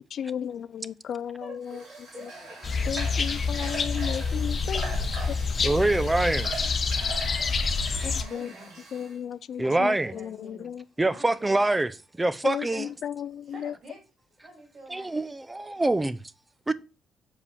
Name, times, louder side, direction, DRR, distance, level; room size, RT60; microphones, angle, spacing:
voice 1, 0.1-1.4 2.9-4.8 8.0-8.5 8.9-9.9 10.6-10.8 12.4-13.4, left 9 dB, 60° left, 0.3 m, -34 dB
voice 2, 1.2-2.3 4.0-5.2 5.6-6.5 8.2-9.0 9.6-10.7 11.0-11.7 12.7-12.9 13.4-14.0 14.4-15.1 15.7-15.9, right 2 dB, 45° right, 3.2 m, -48 dB
Water / Water tap faucet, 1.6-9.2, right 3 dB, 65° right, 2.8 m, -41 dB
sound 1, 2.6-8.2, left 4 dB, 40° left, 0.8 m, -27 dB
voice 3, 5.6-6.5 9.6-10.1 11.0-11.9 12.2-12.9 14.9-16.2 16.7-16.8, right 2 dB, 15° right, 0.4 m, -25 dB
6.8 x 4.9 x 3.5 m
cardioid pair, 90°, 0 cm